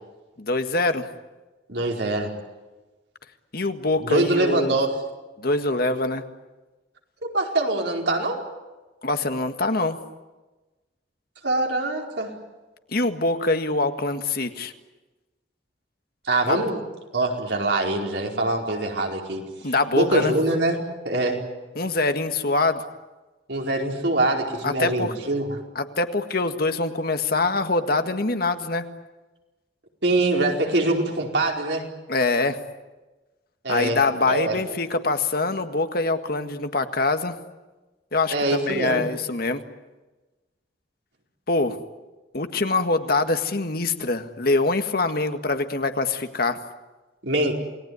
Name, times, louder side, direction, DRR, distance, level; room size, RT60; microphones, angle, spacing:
voice 1, 0.4-1.1 3.5-4.8 5.4-6.2 9.0-10.0 12.9-14.7 16.5-16.6 19.6-20.3 21.8-22.8 24.6-25.1 25.8-28.8 32.1-32.6 33.7-37.3 38.1-38.3 38.7-39.6 41.5-41.8 42.3-46.6, left 3 dB, 55° left, 8 dB, 1.7 m, -24 dB
voice 2, 1.7-2.3 4.0-4.9 7.3-8.4 11.4-12.3 16.2-16.8 17.1-19.4 19.9-20.8 21.0-21.4 23.5-25.5 30.0-31.9 33.6-34.0 34.2-34.5 38.3-39.0 47.2-47.5, right 2 dB, 70° right, 1 dB, 4.7 m, -23 dB
28.5 x 19.5 x 9.6 m, 1.1 s
head